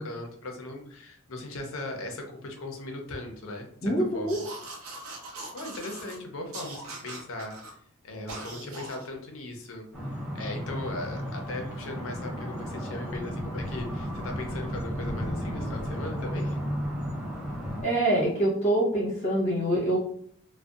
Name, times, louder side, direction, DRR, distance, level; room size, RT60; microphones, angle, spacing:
voice 1, 0.0-4.4 5.5-7.5 8.0-9.9 10.3-16.6, left 2 dB, 70° left, 3 dB, 0.5 m, -38 dB
voice 2, 3.8-4.4 17.8-20.0, right 1 dB, 30° left, -6 dB, 1.0 m, -25 dB
sound 1, 4.3-6.2 6.5-7.7 8.3-9.1, right 2 dB, 70° right, 0.6 m, -41 dB
sound 2, 9.9-17.8, equal, 5° right, 0.6 m, -33 dB
2.6 x 2.1 x 2.3 m, 0.63 s
head